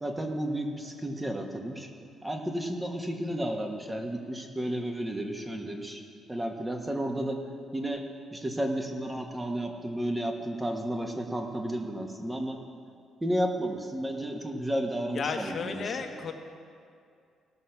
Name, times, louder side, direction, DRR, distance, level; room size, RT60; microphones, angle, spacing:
voice 1, 0.0-1.9 2.2-6.0 6.3-7.4 7.7-8.0 8.3-12.6 13.2-16.1, right 1 dB, 15° right, 3 dB, 1.4 m, -32 dB
voice 2, 15.1-16.3, left 5 dB, 50° left, 5 dB, 1.1 m, -33 dB
17.0 x 6.4 x 5.9 m, 2.4 s
cardioid pair, 90°, 0 cm